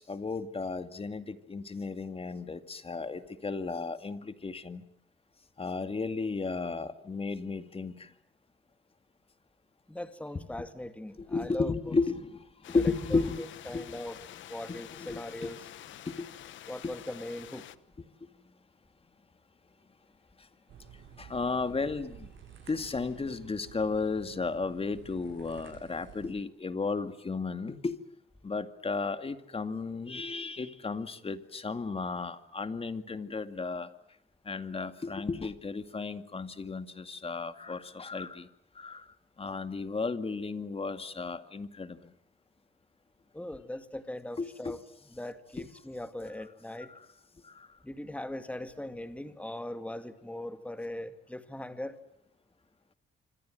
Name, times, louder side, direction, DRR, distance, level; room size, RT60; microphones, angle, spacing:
voice 1, 0.0-4.8 5.6-8.1 10.3-10.7 11.2-13.9 14.7-15.5 16.1-16.3 16.8-16.9 21.2-22.3 22.7-28.0 28.4-33.9 34.5-38.5 38.8-39.0 39.4-42.0 44.4-44.8 45.6-45.7 46.9-47.1 47.5-47.7, left 4 dB, 30° left, 10 dB, 2.2 m, -34 dB
voice 2, 9.9-11.7 12.7-12.8 13.1-13.2 13.7-14.2 14.5-15.6 16.7-17.6 43.3-44.8 45.2-46.9 47.8-52.0, left 1 dB, 5° left, 9 dB, 2.2 m, -40 dB
sound 1, 12.6-17.8, left 12 dB, 70° left, 1.1 m, -48 dB
sound 2, 20.7-26.3, right 8 dB, 75° right, 8.0 m, -52 dB
26.0 x 26.0 x 7.8 m, 0.72 s
cardioid pair, 90°, 20 cm